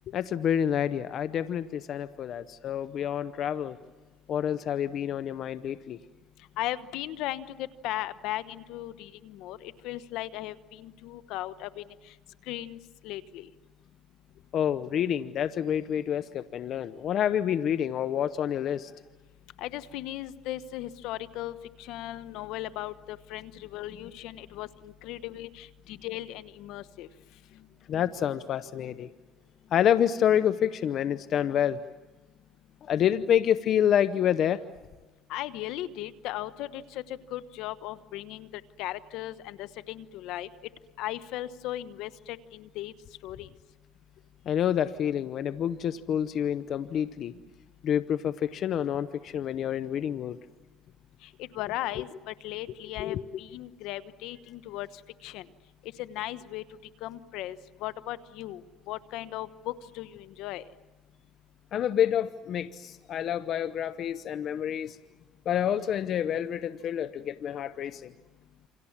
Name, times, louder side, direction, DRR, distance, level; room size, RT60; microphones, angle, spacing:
voice 1, 0.1-3.8 4.3-6.0 14.5-18.9 27.9-29.1 29.7-31.8 32.8-34.6 44.5-47.4 47.8-50.4 53.0-53.2 61.7-65.0 65.5-68.1, left 9 dB, 55° left, 13 dB, 0.8 m, -28 dB
voice 2, 6.6-11.9 12.5-13.5 19.6-27.1 35.3-40.5 41.0-42.9 43.2-43.5 51.4-54.9 55.2-55.5 55.8-56.6 57.0-60.6, left 14 dB, 75° left, 15 dB, 1.1 m, -37 dB
28.5 x 26.5 x 7.3 m, 1.2 s
supercardioid pair, 85°, 0 cm